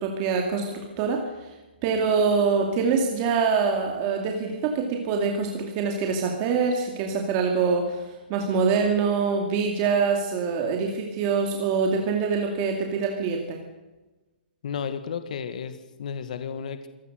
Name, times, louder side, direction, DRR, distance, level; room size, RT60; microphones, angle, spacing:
voice 1, 0.0-1.5 1.8-13.6, right 5 dB, 20° right, 2 dB, 2.4 m, -25 dB
voice 2, 14.6-16.9, left 7 dB, 45° left, 9 dB, 1.9 m, -33 dB
24.5 x 17.5 x 6.6 m, 1.1 s
hypercardioid pair, 175°, 6 cm